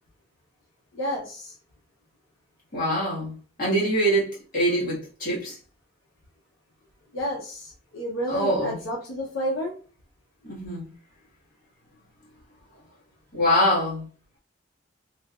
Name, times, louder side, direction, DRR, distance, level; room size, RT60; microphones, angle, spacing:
voice 1, 0.9-1.5 7.1-9.7, equal, 80° left, 0.7 m, -30 dB
voice 2, 2.7-5.6 8.3-8.8 10.5-10.9 13.3-14.0, equal, 45° left, 1.5 m, -24 dB
3.4 x 2.7 x 2.3 m
head